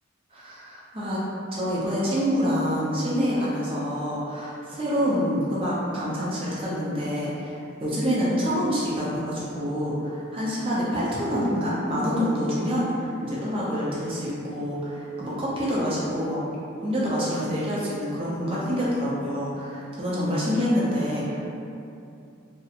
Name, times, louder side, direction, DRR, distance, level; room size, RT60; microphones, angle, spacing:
voice 1, 0.3-1.2 1.5-16.4 16.8-21.4, equal, 25° right, -7 dB, 0.5 m, -27 dB
2.4 x 2.1 x 2.8 m, 2.6 s
head